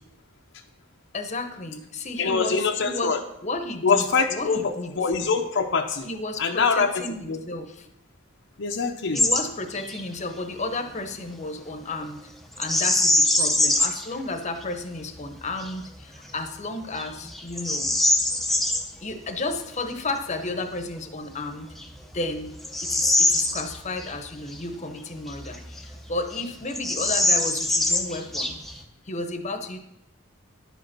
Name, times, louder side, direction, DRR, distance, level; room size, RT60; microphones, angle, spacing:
voice 1, 1.1-5.0 6.0-7.9 9.1-12.2 12.6-17.9 19.0-21.7 22.1-22.5 22.8-28.6 29.1-29.8, left 2 dB, 35° left, 6 dB, 0.9 m, -32 dB
voice 2, 2.2-3.2 3.8-6.1 6.4-7.0 7.3-7.4 8.6-9.2, left 5 dB, 65° left, 4 dB, 0.7 m, -24 dB
Bird vocalization bird call bird song, 9.2-9.5 9.8-10.0 12.6-14.1 14.6-14.7 15.3-15.7 16.3-16.4 17.0-18.9 21.0-21.1 21.7-24.1 24.5-24.6 25.3-26.1 26.3-26.4 26.7-28.8, left 1 dB, ahead, 0.7 m, -23 dB
10.5 x 5.1 x 6.0 m, 0.83 s
head